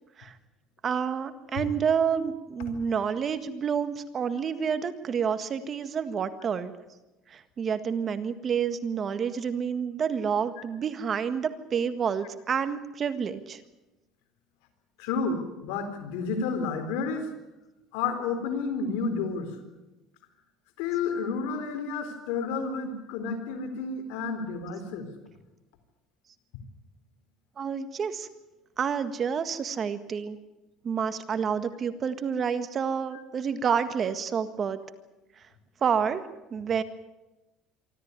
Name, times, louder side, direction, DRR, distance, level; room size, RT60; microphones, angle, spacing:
voice 1, 0.8-6.7 7.3-13.6 27.6-28.3 28.8-30.4 30.8-34.8 35.4-35.5 35.8-36.2 36.5-36.8, right 7 dB, 40° right, 11 dB, 1.7 m, -29 dB
voice 2, 15.0-17.3 17.9-19.6 20.8-25.1, left 4 dB, 85° left, 8 dB, 3.9 m, -31 dB
24.5 x 13.5 x 9.7 m, 1.0 s
supercardioid pair, 110°, 0 cm